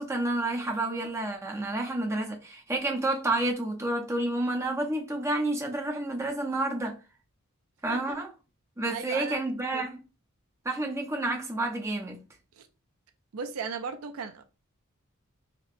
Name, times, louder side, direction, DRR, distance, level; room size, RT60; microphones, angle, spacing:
voice 1, 0.0-7.0 7.8-8.3 8.8-10.0 10.6-12.2, right 2 dB, 15° right, 0.6 m, -30 dB
voice 2, 8.9-9.4 9.7-9.9 12.5-12.7 13.3-14.4, right 5 dB, 75° right, 0.4 m, -36 dB
4.1 x 2.1 x 2.5 m
head